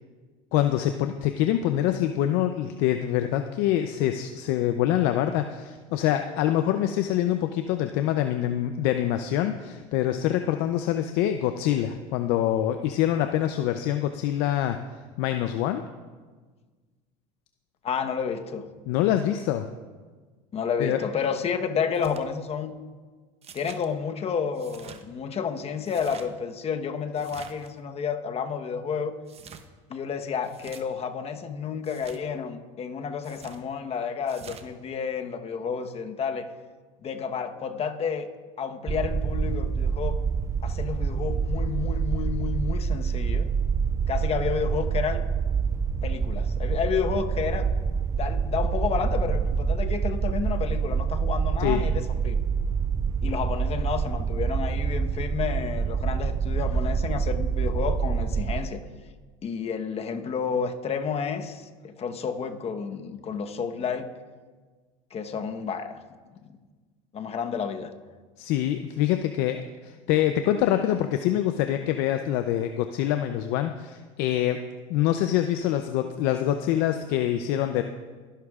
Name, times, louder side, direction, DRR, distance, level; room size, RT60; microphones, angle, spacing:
voice 1, 0.5-14.8 15.2-15.8 18.9-19.7 20.8-21.0 51.6-51.8 68.4-74.6 74.9-77.8, left 12 dB, 70° left, 7 dB, 0.6 m, -25 dB
voice 2, 17.8-18.7 20.5-22.8 23.5-29.2 29.9-36.5 37.0-38.3 38.6-40.2 40.6-43.4 44.1-45.2 46.0-47.7 48.1-52.4 53.2-58.8 59.4-64.1 65.1-66.0 67.1-67.9, left 6 dB, 35° left, 6 dB, 1.1 m, -30 dB
sound 1, 21.9-22.3 23.4-23.9 24.5-25.0 25.8-26.3 27.2-27.7 29.3-29.7 30.4-30.8 31.8-32.2 33.2-33.6 34.3-34.7, right 6 dB, 35° right, 1.0 m, -46 dB
sound 2, 38.9-58.6, right 6 dB, 20° right, 0.3 m, -26 dB
21.0 x 11.5 x 2.4 m, 1.4 s
supercardioid pair, 95°, 17 cm